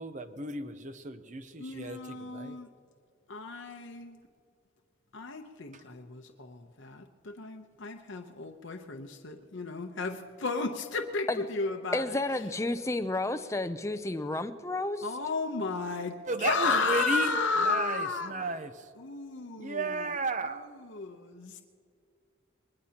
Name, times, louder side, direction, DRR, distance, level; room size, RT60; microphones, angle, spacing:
voice 1, 0.0-2.6 16.3-17.3 17.6-18.9 19.6-20.7, right 3 dB, 40° right, 10 dB, 0.7 m, -34 dB
voice 2, 1.6-2.7 3.3-4.2 5.1-12.2 15.0-18.3 19.0-20.2 20.5-21.6, left 4 dB, 75° left, 4 dB, 0.9 m, -33 dB
voice 3, 11.9-15.1, left 2 dB, 15° left, 10 dB, 0.5 m, -31 dB
22.5 x 20.5 x 2.9 m, 2.2 s
head